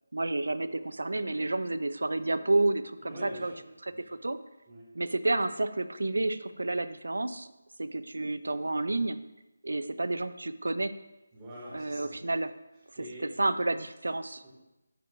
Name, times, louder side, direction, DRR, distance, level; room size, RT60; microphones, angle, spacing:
voice 1, 0.1-3.5 4.1-4.4 4.9-7.5 7.8-9.2 9.6-10.9 11.7-12.5 13.4-14.4, right 2 dB, 75° right, 13 dB, 0.4 m, -30 dB
voice 2, 3.0-3.6 3.9-4.0 4.7-4.9 6.5-6.6 11.3-12.2 13.0-13.4 14.4-14.5, equal, 20° right, -7 dB, 2.0 m, -44 dB
11.5 x 4.4 x 2.5 m, 0.95 s
figure-of-eight pair, 160°, 0 cm